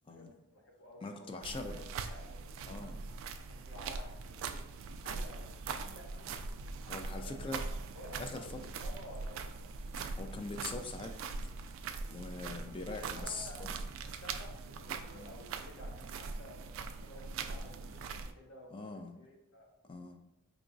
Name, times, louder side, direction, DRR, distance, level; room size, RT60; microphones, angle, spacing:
voice 1, 0.0-1.1 1.6-2.5 3.5-4.6 5.0-6.4 7.2-7.6 7.9-9.8 13.2-13.6 14.0-19.7, left 1 dB, 70° left, -1 dB, 1.0 m, -53 dB
voice 2, 1.0-1.7 2.7-3.0 6.9-7.6 8.2-8.4 10.2-11.2 11.4-11.5 12.1-13.7 15.1-15.3 18.7-19.1 19.9-20.2, left 3 dB, 25° left, 5 dB, 0.3 m, -42 dB
sound 1, 1.4-18.3, right 4 dB, 65° right, 0.3 m, -42 dB
4.7 x 2.9 x 2.6 m, 0.90 s
head